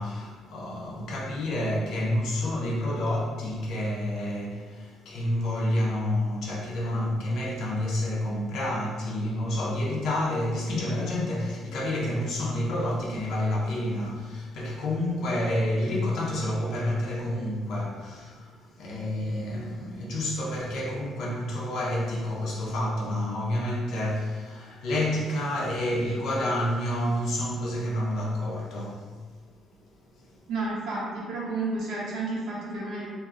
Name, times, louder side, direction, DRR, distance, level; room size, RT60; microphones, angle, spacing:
voice 1, 0.0-29.4 30.2-30.4, left 1 dB, 65° left, 0.5 m, -29 dB
voice 2, 30.5-33.1, right 3 dB, 70° right, 0.5 m, -31 dB
2.3 x 2.0 x 3.6 m
cardioid pair, 175°, 0 cm